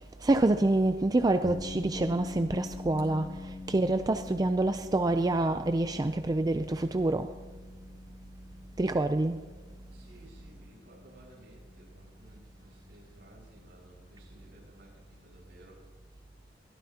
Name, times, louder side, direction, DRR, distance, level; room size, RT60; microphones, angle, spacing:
voice 1, 0.2-3.3 3.7-7.3 8.8-9.4, right 2 dB, 20° right, 0.4 m, -26 dB
sound 1, 1.4-15.7, left 2 dB, 30° left, 0.8 m, -46 dB
voice 2, 9.9-15.8, right 1 dB, 70° right, 5.5 m, -56 dB
21.5 x 13.5 x 2.9 m
head